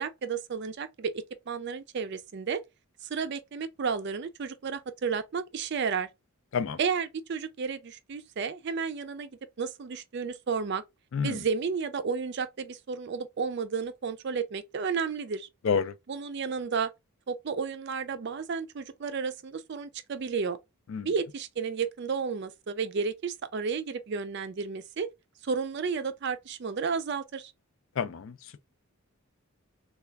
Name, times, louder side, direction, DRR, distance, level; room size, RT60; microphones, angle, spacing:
voice 1, 0.0-2.6 3.1-6.1 6.8-9.3 9.6-10.8 11.2-15.5 16.1-16.9 17.3-20.6 21.0-25.1 25.4-27.5, right 5 dB, 50° right, 0.4 m, -32 dB
voice 2, 28.0-28.3, left 6 dB, 60° left, 0.4 m, -28 dB
3.3 x 2.3 x 3.3 m
head